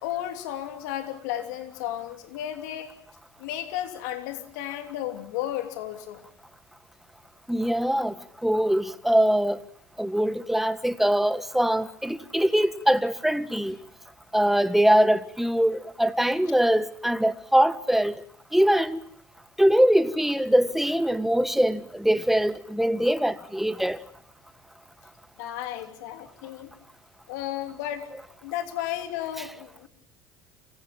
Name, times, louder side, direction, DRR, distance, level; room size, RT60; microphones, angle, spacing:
voice 1, 0.0-2.9 3.4-6.2 25.4-26.7 27.3-28.1 28.4-29.9, left 12 dB, 85° left, 3.0 m, -33 dB
voice 2, 7.5-8.1 8.4-9.6 10.0-13.8 14.3-18.2 18.5-19.0 19.6-24.0, equal, 5° right, 1.6 m, -22 dB
28.0 x 17.0 x 9.1 m
supercardioid pair, 90°, 9 cm